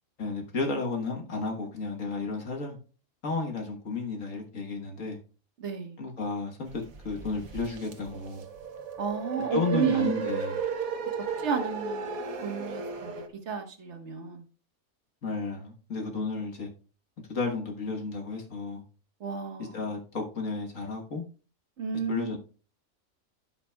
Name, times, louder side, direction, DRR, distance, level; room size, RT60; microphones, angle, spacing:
voice 1, 0.2-2.8 3.2-5.2 6.0-8.5 9.5-10.6 15.2-16.7 17.3-18.8 19.6-21.2 22.1-22.4, left 3 dB, 65° left, 1.8 m, -33 dB
voice 2, 5.6-6.0 9.0-10.1 11.4-12.1 12.4-14.4 19.2-19.9 21.8-22.3, right 7 dB, 55° right, 1.6 m, -32 dB
sound 1, 6.7-13.3, right 5 dB, 80° right, 1.5 m, -35 dB
15.5 x 5.8 x 2.3 m
omnidirectional pair, 1.5 m